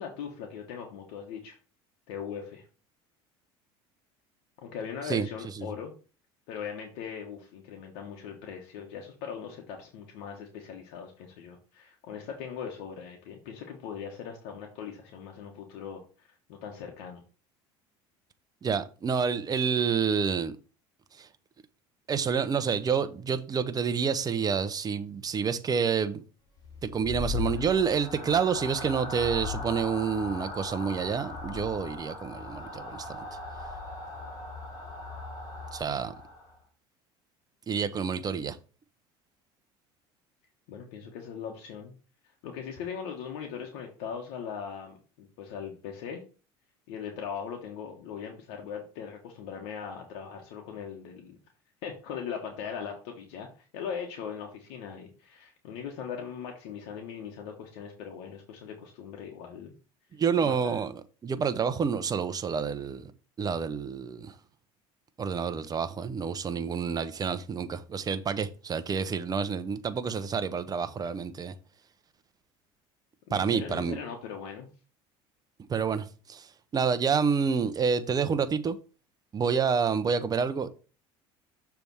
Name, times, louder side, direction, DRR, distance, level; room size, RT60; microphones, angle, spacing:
voice 1, 0.0-1.6 2.1-2.6 4.6-5.9 6.5-17.2 40.7-41.9 42.4-46.2 46.9-51.4 51.8-59.7 60.3-60.8 73.3-74.7 80.2-80.3, left 7 dB, 75° left, 1.4 m, -40 dB
voice 2, 18.6-20.5 21.2-21.3 22.1-26.2 26.8-33.2 35.7-36.1 37.7-38.6 60.1-60.9 61.2-63.1 63.4-64.3 65.2-71.5 73.3-74.0 75.7-76.5 76.7-78.8 79.3-80.7, right 6 dB, 30° right, 0.8 m, -28 dB
sound 1, 26.6-36.6, left 3 dB, 30° left, 3.9 m, -38 dB
6.8 x 3.5 x 6.2 m
supercardioid pair, 100°, 13 cm